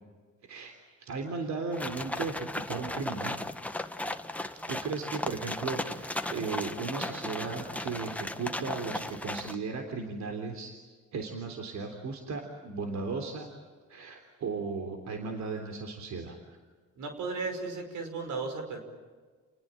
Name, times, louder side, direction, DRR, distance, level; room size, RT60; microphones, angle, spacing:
voice 1, 0.4-0.7 1.0-3.4 4.7-10.7 11.1-13.5 13.9-16.6, right 4 dB, 65° right, 4 dB, 3.5 m, -36 dB
sound 1, 1.7-9.6, left 1 dB, 5° left, 1.5 m, -36 dB
voice 2, 17.0-18.8, right 4 dB, 85° right, 6 dB, 5.5 m, -35 dB
30.0 x 20.0 x 8.9 m, 1.5 s
cardioid pair, 90°, 30 cm